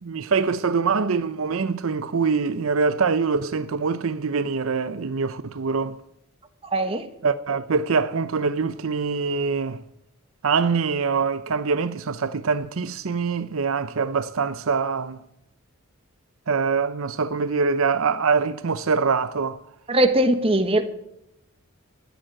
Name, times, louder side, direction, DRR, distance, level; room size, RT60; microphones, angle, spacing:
voice 1, 0.0-6.0 7.2-9.8 10.4-15.2 16.5-19.6, right 5 dB, 75° right, 0.6 m, -24 dB
voice 2, 6.7-7.1 19.9-20.8, right 1 dB, 25° right, 1.4 m, -20 dB
13.5 x 9.1 x 8.8 m
head